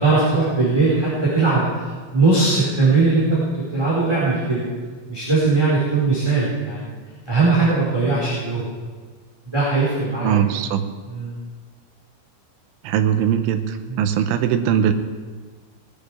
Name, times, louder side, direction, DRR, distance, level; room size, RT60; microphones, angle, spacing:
voice 1, 0.0-1.8 2.1-4.7 5.1-6.9 7.3-8.7 9.5-10.3 11.1-11.4 13.9-14.0, right 3 dB, 5° right, -8 dB, 3.6 m, -19 dB
voice 2, 10.2-10.9 12.8-14.9, right 9 dB, 80° right, 7 dB, 3.3 m, -20 dB
19.0 x 11.0 x 5.0 m, 1.5 s
omnidirectional pair, 5.6 m